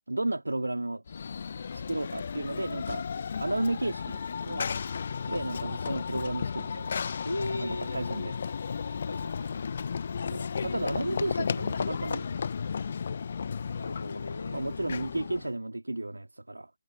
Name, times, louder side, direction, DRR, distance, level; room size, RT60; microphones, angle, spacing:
voice 1, 0.1-1.0 1.7-3.1 3.4-4.7 5.3-6.9 7.6-8.3 10.3-12.4 14.5-16.7, right 2 dB, 85° right, 3.1 m, -33 dB
Run / Train, 1.1-15.5, left 6 dB, 50° left, 0.9 m, -34 dB
voice 2, 7.2-8.1 9.1-9.6 13.7-14.7, left 2 dB, 85° left, 3.1 m, -37 dB
figure-of-eight pair, 150°, 0 cm